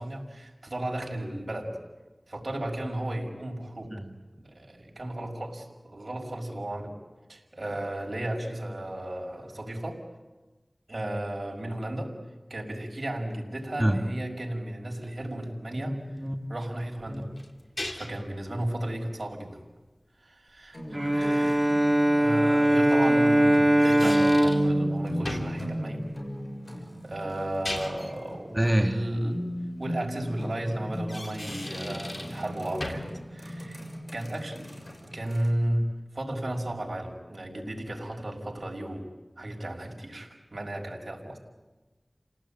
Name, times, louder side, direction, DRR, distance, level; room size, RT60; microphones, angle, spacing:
voice 1, 0.0-1.8 2.3-3.9 4.3-7.0 7.3-10.0 10.9-12.1 12.5-16.0 16.5-17.3 17.9-19.6 20.2-26.0 27.0-29.4 29.8-33.8 34.1-34.7 35.0-35.8 36.1-39.1 39.4-41.4, right 1 dB, 70° right, 0 dB, 5.7 m, -34 dB
voice 2, 15.8-16.4 17.1-17.2 28.5-29.0, right 1 dB, 10° right, 3 dB, 2.4 m, -27 dB
sound 1, 17.0-18.3 21.5-21.6 23.5-24.7 25.3-25.6 27.4-28.2 30.9-32.5 32.8-33.2, left 1 dB, 60° left, 2.8 m, -37 dB
sound 2, 20.7-35.5, equal, 45° left, 6.2 m, -38 dB
Bowed string instrument, 20.9-26.2, right 1 dB, 30° right, 1.8 m, -22 dB
30.0 x 18.5 x 9.0 m, 1.2 s
wide cardioid pair, 45°, 0 cm